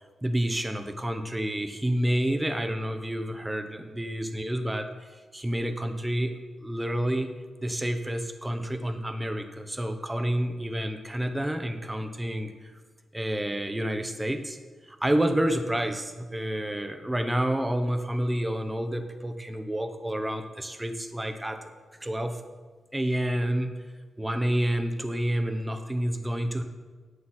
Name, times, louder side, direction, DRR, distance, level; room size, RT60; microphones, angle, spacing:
voice 1, 0.2-4.9 5.3-6.3 6.6-7.3 7.6-12.5 13.1-14.6 14.9-21.7 22.0-22.4 22.9-23.7 24.2-26.6, right 1 dB, 10° right, 8 dB, 0.9 m, -29 dB
11.5 x 8.4 x 4.4 m, 1.4 s
cardioid pair, 100°, 0 cm